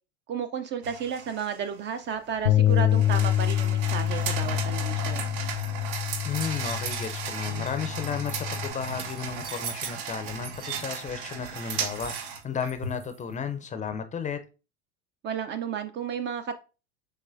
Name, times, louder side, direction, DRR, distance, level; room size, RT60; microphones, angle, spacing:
voice 1, 0.3-5.2 15.2-16.5, right 7 dB, 35° right, 0.4 m, -32 dB
sound 1, 0.8-13.2, right 6 dB, 65° right, 0.8 m, -36 dB
Bass guitar, 2.5-8.7, left 12 dB, 80° left, 0.7 m, -26 dB
voice 2, 6.2-14.4, left 7 dB, 20° left, 0.5 m, -33 dB
sound 2, 6.4-12.7, right 7 dB, 90° right, 0.7 m, -41 dB
5.6 x 3.1 x 2.5 m
hypercardioid pair, 90°, 35 cm